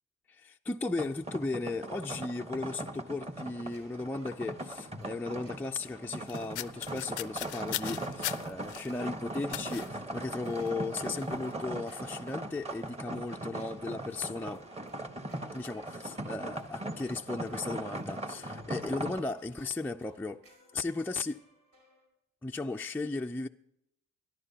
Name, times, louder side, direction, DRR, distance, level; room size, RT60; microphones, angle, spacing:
voice 1, 0.3-14.6 15.5-20.4 20.7-21.4 22.4-23.5, left 3 dB, 5° left, 0.4 m, -36 dB
sound 1, 0.9-19.2, right 1 dB, 20° right, 1.3 m, -40 dB
sound 2, 3.7-22.1, right 2 dB, 85° right, 5.5 m, -60 dB
sound 3, 6.3-8.9 9.5-9.9 10.5-10.7 11.0-11.3, left 16 dB, 90° left, 0.6 m, -39 dB
23.5 x 11.0 x 2.8 m
cardioid pair, 90°, 30 cm